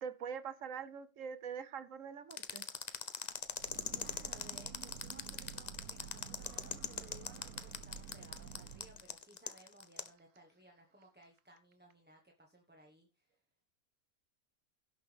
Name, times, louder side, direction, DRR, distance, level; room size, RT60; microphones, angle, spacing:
voice 1, 0.0-2.6, right 7 dB, 60° right, 1.2 m, -43 dB
sound 1, 2.3-10.1, left 6 dB, 40° left, 0.7 m, -41 dB
Breathing / Train, 3.3-9.1, right 7 dB, 85° right, 1.2 m, -51 dB
voice 2, 3.9-13.4, right 1 dB, 5° right, 1.3 m, -61 dB
17.0 x 6.2 x 3.5 m
omnidirectional pair, 1.5 m